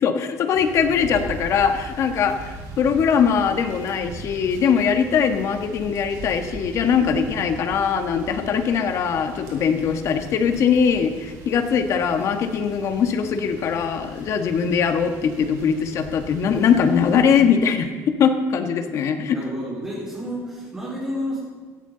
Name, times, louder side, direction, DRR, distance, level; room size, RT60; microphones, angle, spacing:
voice 1, 0.0-19.4, left 7 dB, 50° left, 7 dB, 1.4 m, -21 dB
sound 1, 0.5-17.3, right 3 dB, 65° right, 4.7 m, -40 dB
voice 2, 19.3-21.4, equal, 15° right, -8 dB, 4.1 m, -30 dB
16.5 x 14.5 x 3.9 m, 1.5 s
cardioid pair, 145°, 7 cm